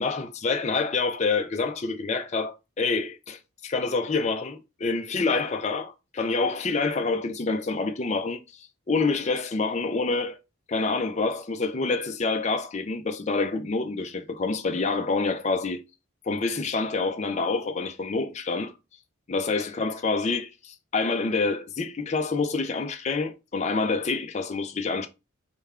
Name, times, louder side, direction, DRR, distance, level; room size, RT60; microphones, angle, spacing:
voice 1, 0.0-10.4 10.7-15.8 16.3-18.7 19.3-25.1, left 3 dB, 30° left, 0.4 m, -27 dB
4.4 x 3.4 x 2.3 m
head